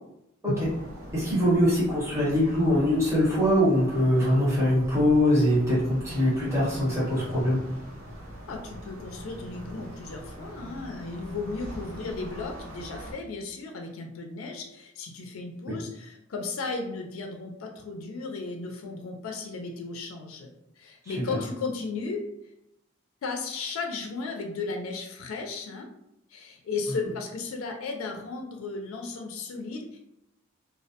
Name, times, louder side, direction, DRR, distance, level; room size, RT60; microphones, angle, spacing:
sound 1, 0.5-13.1, equal, 85° right, 0.6 m, -42 dB
voice 1, 1.1-7.6 21.0-21.1, equal, 15° right, -8 dB, 0.9 m, -23 dB
voice 2, 8.5-22.2 23.2-25.9 26.3-30.1, left 4 dB, 75° left, 2 dB, 0.4 m, -35 dB
2.3 x 2.1 x 2.7 m, 0.83 s
head